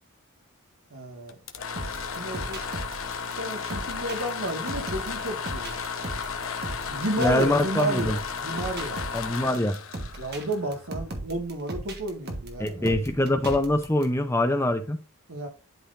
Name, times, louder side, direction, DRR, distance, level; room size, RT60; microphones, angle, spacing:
voice 1, 0.9-1.4 2.2-2.6 3.4-5.8 6.9-9.0 10.2-13.0 15.3-15.5, right 1 dB, 80° right, 1.8 m, -32 dB
sound 1, 1.3-11.1, left 6 dB, 70° left, 0.9 m, -34 dB
sound 2, 1.8-14.0, right 2 dB, 45° right, 1.4 m, -37 dB
voice 2, 7.2-8.2 9.1-9.8 12.6-15.0, left 1 dB, 10° left, 0.6 m, -24 dB
11.5 x 4.0 x 2.6 m
head